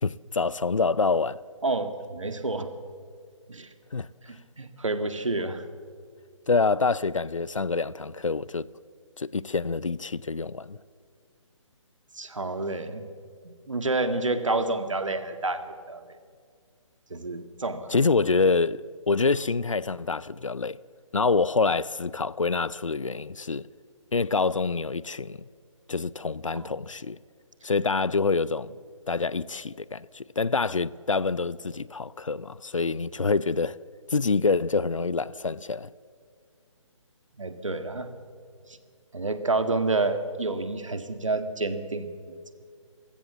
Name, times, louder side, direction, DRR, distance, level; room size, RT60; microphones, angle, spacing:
voice 1, 0.0-1.4 3.9-4.1 6.5-8.7 9.2-10.8 17.9-20.8 21.1-23.7 24.1-25.4 25.9-27.2 27.6-28.7 29.1-33.8 34.1-35.9, left 4 dB, 75° left, 0.6 m, -26 dB
voice 2, 1.6-2.7 3.5-3.7 4.2-5.7 12.1-13.1 13.4-16.0 17.1-18.1 26.5-26.7 37.4-38.1 38.7-38.8 39.1-42.4, right 2 dB, 70° right, 2.0 m, -29 dB
28.0 x 16.0 x 7.2 m
figure-of-eight pair, 140°, 17 cm